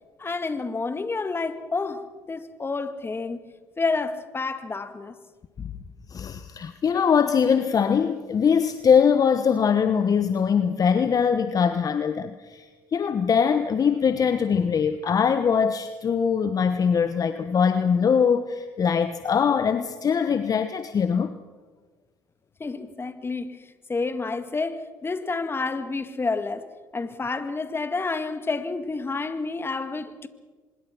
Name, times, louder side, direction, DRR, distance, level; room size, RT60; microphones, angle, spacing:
voice 1, 0.2-5.2 22.6-26.7 26.9-30.3, left 3 dB, 25° left, 2.0 m, -29 dB
voice 2, 6.1-21.4, left 6 dB, 40° left, 1.2 m, -22 dB
25.0 x 21.5 x 6.1 m
hypercardioid pair, 60°, 9 cm